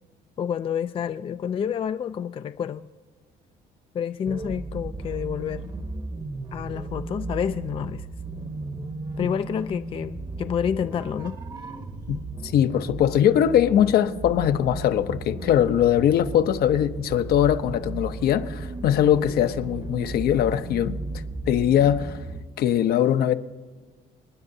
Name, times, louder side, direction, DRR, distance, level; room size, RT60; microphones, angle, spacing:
voice 1, 0.4-2.9 3.9-5.7 6.5-8.1 9.2-11.4, left 8 dB, 30° left, 0.3 m, -29 dB
sound 1, 4.3-22.4, right 3 dB, 25° right, 0.9 m, -35 dB
voice 2, 12.1-21.0 21.5-22.2 22.6-23.3, left 10 dB, 65° left, 0.7 m, -21 dB
29.5 x 9.8 x 2.7 m
cardioid pair, 110°, 17 cm